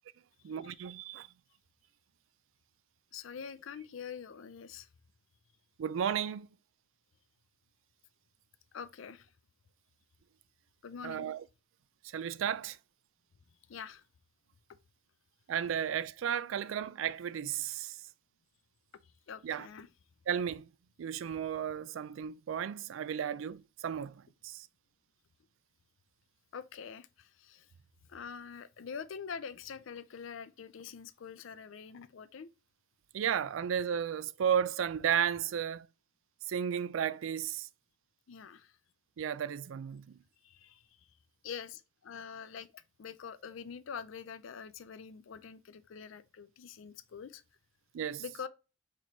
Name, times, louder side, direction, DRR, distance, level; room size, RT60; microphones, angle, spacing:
voice 1, 0.4-1.3 5.8-6.5 11.0-11.4 12.0-12.8 15.5-18.0 19.4-19.7 20.3-20.7 21.0-24.7 33.1-35.9 36.5-37.7 39.2-40.2 47.9-48.2, right 8 dB, 85° right, 0.3 m, -34 dB
voice 2, 3.1-4.9 8.7-9.3 10.8-11.3 13.7-14.0 19.3-19.9 26.5-27.7 28.1-32.5 38.3-38.7 40.4-40.8 41.4-47.4 48.2-48.5, left 6 dB, 85° left, 0.4 m, -45 dB
4.4 x 3.1 x 3.9 m
head